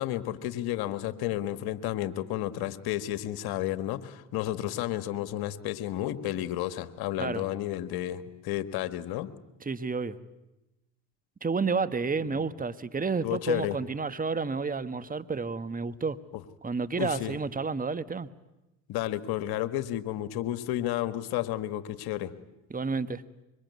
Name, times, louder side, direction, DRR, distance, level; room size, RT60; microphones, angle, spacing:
voice 1, 0.0-9.3 12.3-12.4 13.2-13.8 16.3-16.4 17.0-17.3 18.9-22.3, left 13 dB, 75° left, 12 dB, 1.7 m, -32 dB
voice 2, 9.6-10.2 11.4-16.2 16.6-18.3 22.7-23.2, right 4 dB, 20° right, 13 dB, 1.4 m, -30 dB
25.5 x 23.5 x 9.6 m, 0.95 s
hypercardioid pair, 65°, 38 cm